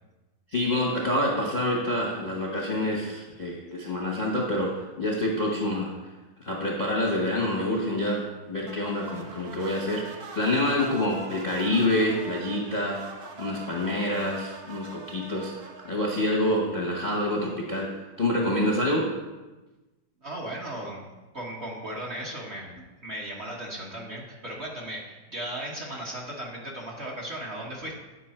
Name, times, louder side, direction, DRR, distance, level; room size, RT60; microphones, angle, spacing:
voice 1, 0.5-5.9 6.4-13.1 13.4-15.5 15.8-19.1, left 1 dB, 30° left, -2 dB, 0.8 m, -27 dB
sound 1, 8.6-17.1, right 4 dB, 60° right, 1.2 m, -43 dB
voice 2, 20.2-21.0 21.3-28.0, right 1 dB, 40° right, -3 dB, 1.4 m, -36 dB
9.2 x 5.4 x 4.3 m, 1.1 s
omnidirectional pair, 2.1 m